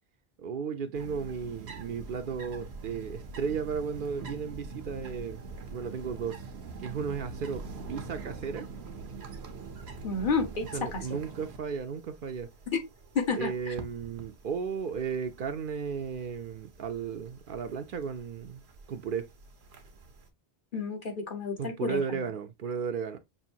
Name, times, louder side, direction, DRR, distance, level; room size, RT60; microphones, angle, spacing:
voice 1, 0.4-6.4 6.8-8.7 10.7-12.5 13.3-18.6 18.9-19.3 21.6-23.2, right 6 dB, 60° right, 0.7 m, -34 dB
sound 1, 0.9-20.3, right 4 dB, 85° right, 1.1 m, -45 dB
voice 2, 10.0-11.0 12.7-12.8 13.1-13.5 20.7-22.2, left 4 dB, 55° left, 1.1 m, -30 dB
5.5 x 2.6 x 2.7 m
omnidirectional pair, 1.0 m